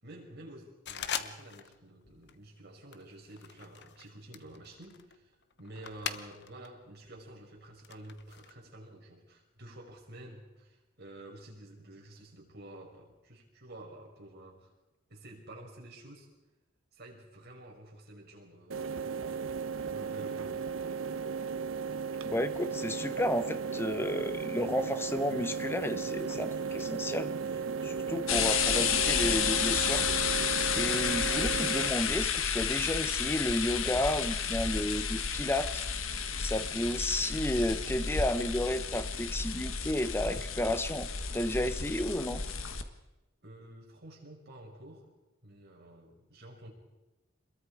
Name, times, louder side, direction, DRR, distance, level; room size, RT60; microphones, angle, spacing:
voice 1, 0.0-14.7 15.1-16.3 16.9-19.6 19.9-20.5 43.4-45.1 45.4-46.7, right 1 dB, 55° right, 0 dB, 5.8 m, -50 dB
Nerf Surgefire Reload Shot & Rattle, 0.9-1.8 2.0-2.4 2.9-6.7 7.0-8.5, left 8 dB, 55° left, 1.1 m, -41 dB
sound 1, 18.7-31.9, right 5 dB, 80° right, 1.1 m, -35 dB
voice 2, 22.3-27.3 27.8-30.1 30.7-35.8 36.4-41.1 41.3-42.4, left 1 dB, 10° left, 11 dB, 1.0 m, -32 dB
sound 2, 28.3-42.8, left 6 dB, 80° left, 1.5 m, -31 dB
27.5 x 21.5 x 5.0 m, 1.0 s
head